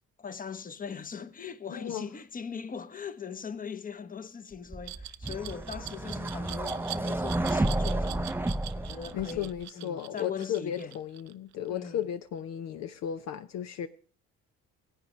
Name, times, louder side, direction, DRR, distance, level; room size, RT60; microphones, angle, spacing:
voice 1, 0.2-8.4 8.8-11.0 11.7-12.0, left 6 dB, 30° left, 1.0 m, -40 dB
voice 2, 1.7-2.1 9.1-13.9, left 10 dB, 60° left, 0.7 m, -35 dB
sound 1, 4.7-9.6, right 1 dB, 5° right, 0.5 m, -31 dB
Glass, 4.8-11.7, right 16 dB, 70° right, 0.6 m, -43 dB
17.0 x 8.8 x 3.1 m
supercardioid pair, 65°, 30 cm